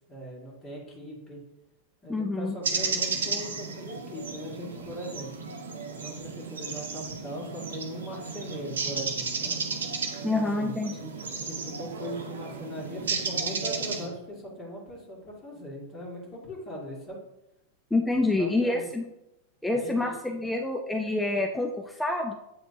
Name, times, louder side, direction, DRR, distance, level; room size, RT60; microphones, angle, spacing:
voice 1, 0.1-1.4 2.0-5.3 6.0-9.6 10.2-10.7 11.4-17.2 18.1-18.9 19.7-20.5, equal, 25° left, -3 dB, 1.8 m, -40 dB
voice 2, 2.1-2.6 10.2-11.1 17.9-19.1 19.6-22.3, left 2 dB, 5° left, 2 dB, 0.5 m, -27 dB
sound 1, 2.6-14.1, right 5 dB, 65° right, 0.9 m, -33 dB
8.2 x 4.2 x 2.7 m, 0.90 s
figure-of-eight pair, 90°, 0 cm